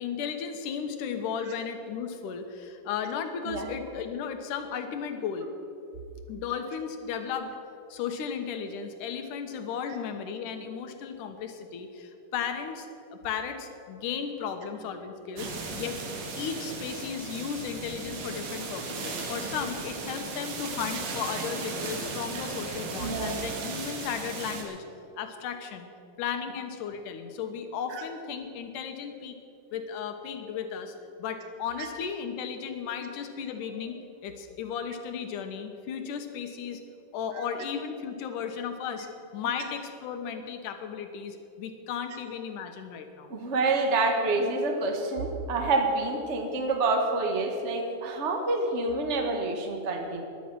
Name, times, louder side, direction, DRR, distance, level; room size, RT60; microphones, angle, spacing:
voice 1, 0.0-5.5 6.3-7.6 7.9-16.0 16.4-24.8 25.2-25.9 26.2-29.4 29.7-36.8 37.1-39.1 39.3-43.3, left 7 dB, 75° left, 6 dB, 2.6 m, -35 dB
sound 1, 15.4-24.6, right 3 dB, 80° right, 3.5 m, -36 dB
voice 2, 23.0-23.4 27.9-28.0 43.3-50.2, right 3 dB, 60° right, 2 dB, 0.7 m, -27 dB
17.0 x 11.5 x 6.1 m, 2.7 s
omnidirectional pair, 3.8 m